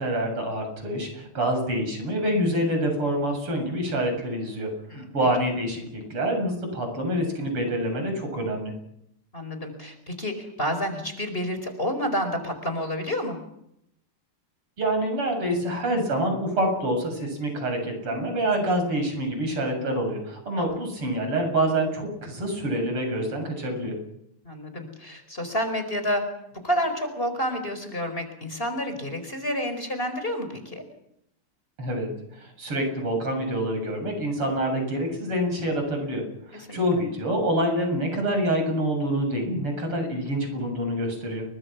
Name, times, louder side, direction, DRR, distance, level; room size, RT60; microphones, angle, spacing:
voice 1, 0.0-4.7 4.9-8.7 14.8-24.0 31.8-36.2 36.5-41.4, right 1 dB, 85° right, 4 dB, 8.3 m, -26 dB
voice 2, 9.3-13.4 20.6-20.8 24.4-26.2 26.6-30.8 36.7-36.8, equal, 25° left, 7 dB, 4.9 m, -29 dB
29.5 x 24.0 x 6.1 m, 0.77 s
omnidirectional pair, 2.4 m